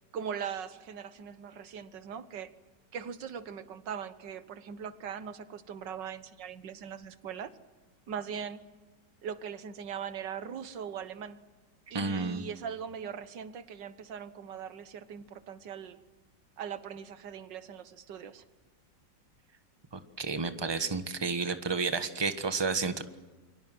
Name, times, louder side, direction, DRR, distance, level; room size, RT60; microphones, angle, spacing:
voice 1, 0.1-2.5 2.9-7.5 8.1-8.7 9.2-11.4 11.9-16.0 16.6-18.4, right 7 dB, 80° right, 12 dB, 1.9 m, -40 dB
voice 2, 11.9-12.4 20.2-23.0, right 4 dB, 15° right, 9 dB, 1.3 m, -31 dB
29.0 x 24.0 x 7.7 m, 1.3 s
omnidirectional pair, 1.9 m